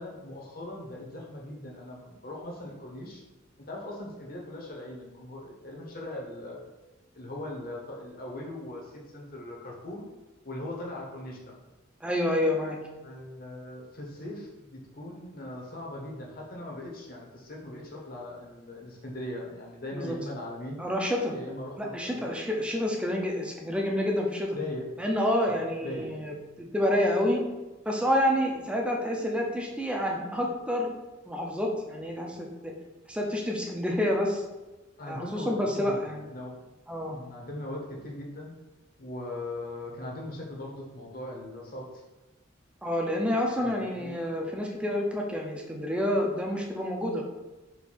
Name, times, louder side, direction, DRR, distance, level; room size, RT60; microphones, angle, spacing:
voice 1, 0.0-3.2 3.7-6.6 7.1-10.0 10.4-11.6 13.0-20.8 21.3-22.3 24.5-25.0 25.5-26.1 35.0-36.6 37.1-38.5 39.0-42.0 43.6-44.1, left 1 dB, 45° left, -1 dB, 0.9 m, -40 dB
voice 2, 12.0-12.8 19.9-20.2 20.8-21.3 21.8-24.6 25.0-27.4 27.9-30.9 31.3-32.7 33.1-34.4 35.1-36.3 36.9-37.2 42.8-47.2, left 1 dB, 5° right, 0 dB, 0.5 m, -28 dB
4.4 x 2.6 x 4.2 m, 1.1 s
head